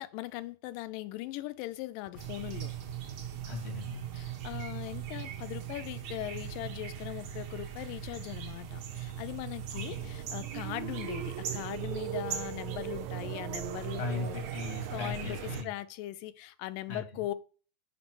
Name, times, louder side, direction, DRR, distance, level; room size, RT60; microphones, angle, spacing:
voice 1, 0.0-2.7 4.1-14.4 14.9-15.4 15.6-17.3, left 15 dB, 90° left, 2.3 m, -40 dB
sound 1, 2.2-15.6, right 10 dB, 60° right, 2.0 m, -39 dB
voice 2, 3.4-4.0 9.7-10.1 14.0-15.7 16.9-17.0, left 5 dB, 30° left, 1.2 m, -38 dB
sound 2, 9.8-15.6, right 13 dB, 80° right, 1.7 m, -41 dB
5.9 x 5.4 x 6.1 m
omnidirectional pair, 3.8 m